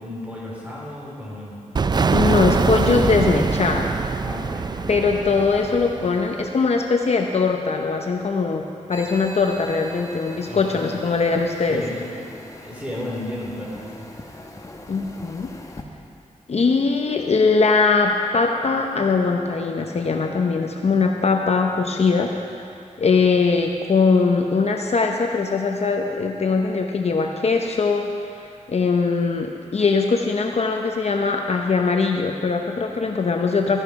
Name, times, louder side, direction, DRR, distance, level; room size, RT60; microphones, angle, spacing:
voice 1, 0.0-1.6 4.2-4.9 10.5-10.9 11.7-12.0 12.6-14.4, left 1 dB, 10° right, -5 dB, 3.6 m, -34 dB
sound 1, 1.8-6.4, right 4 dB, 35° right, 0.3 m, -23 dB
voice 2, 2.1-3.9 4.9-11.8 14.9-15.5 16.5-22.7 23.0-28.1 28.7-33.8, left 4 dB, 55° left, 2 dB, 0.8 m, -21 dB
sound 2, 8.9-15.8, left 1 dB, 25° left, 1.0 m, -41 dB
14.0 x 11.0 x 4.7 m, 2.5 s
wide cardioid pair, 105°, 13 cm